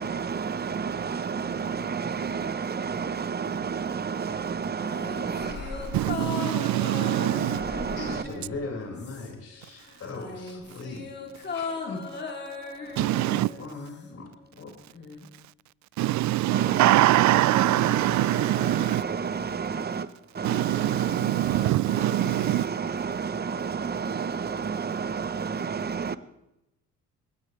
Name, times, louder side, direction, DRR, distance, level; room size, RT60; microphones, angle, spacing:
voice 1, 0.0-6.2 6.6-8.2 12.8-13.1 16.5-26.2, right 6 dB, 35° right, 1.0 m, -31 dB
sound 1, 4.2-4.9 5.2-7.1 7.4-9.0, left 2 dB, 90° left, 6.6 m, -43 dB
sound 2, 4.8-9.5 9.8-14.1 14.4-14.5, left 4 dB, 35° left, 3.3 m, -37 dB
voice 2, 5.9-7.6 13.0-13.5 16.0-19.0 20.4-22.6, right 16 dB, 70° right, 0.4 m, -23 dB
voice 3, 8.0-11.1 11.5-12.3 13.2-14.3 14.6-15.3, left 3 dB, 55° left, 5.8 m, -39 dB
21.5 x 18.0 x 3.4 m
cardioid pair, 90°, 30 cm